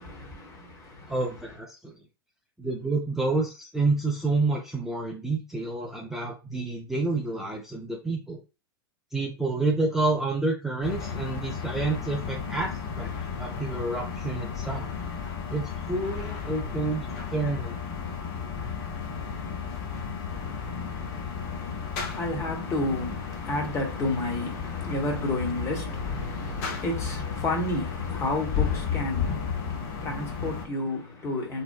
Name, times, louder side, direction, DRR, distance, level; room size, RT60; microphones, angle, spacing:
voice 1, 0.0-1.2 20.3-31.6, left 2 dB, 20° left, 0.9 m, -32 dB
voice 2, 1.1-1.9 2.6-8.4 9.1-13.1 13.4-14.9 15.5-17.0 17.3-17.8, right 3 dB, 5° right, 0.5 m, -29 dB
sound 1, 10.8-30.7, left 6 dB, 40° left, 0.6 m, -33 dB
2.8 x 2.0 x 2.2 m
figure-of-eight pair, 100°, 13 cm